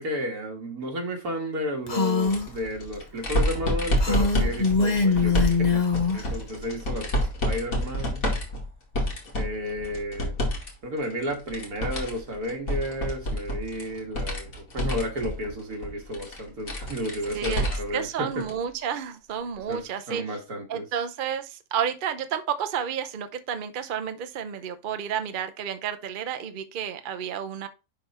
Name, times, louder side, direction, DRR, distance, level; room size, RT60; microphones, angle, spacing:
voice 1, 0.0-8.3 9.3-10.3 10.8-18.5 19.7-19.8 20.1-20.9, equal, 80° right, 2.3 m, -32 dB
Female speech woman speaking, 1.9-2.5 4.0-6.3, left 4 dB, 30° left, 1.1 m, -23 dB
sound 1, 2.2-10.7 11.0-18.0 18.4-18.5 19.7-19.8, equal, 65° left, 2.5 m, -29 dB
voice 2, 17.3-20.4 20.7-27.7, right 8 dB, 50° right, 0.6 m, -31 dB
10.5 x 3.5 x 4.2 m
omnidirectional pair, 1.6 m